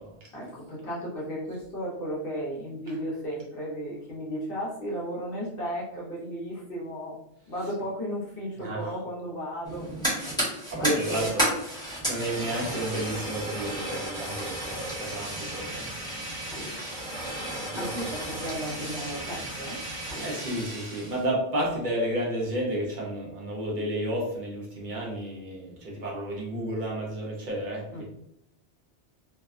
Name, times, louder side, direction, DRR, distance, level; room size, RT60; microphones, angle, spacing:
voice 1, 0.3-7.2 7.5-9.9 10.5-11.3 17.8-19.8 27.9-28.1, equal, 55° left, -5 dB, 1.0 m, -34 dB
voice 2, 8.6-8.9 10.7-11.5 12.1-16.2 16.8-16.9 17.5-17.9 20.1-28.1, right 1 dB, 50° right, -2 dB, 0.8 m, -32 dB
Fire, 9.6-21.2, right 1 dB, 5° left, 1.0 m, -33 dB
2.6 x 2.2 x 2.4 m, 0.76 s
omnidirectional pair, 1.2 m